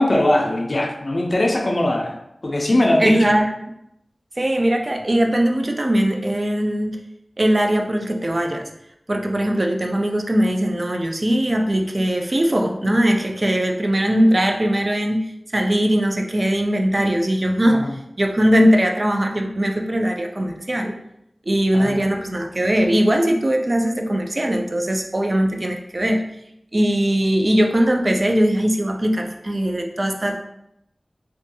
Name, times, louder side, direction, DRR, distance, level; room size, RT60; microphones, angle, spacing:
voice 1, 0.0-3.3 17.7-17.9 21.7-22.0, left 1 dB, 50° left, 2 dB, 0.3 m, -20 dB
voice 2, 3.0-3.5 4.4-7.0 7.4-8.7 9.1-17.8 18.2-21.0 21.5-26.2 26.7-30.4, equal, 40° right, 3 dB, 0.3 m, -20 dB
2.6 x 2.2 x 2.6 m, 0.80 s
wide cardioid pair, 75°, 0 cm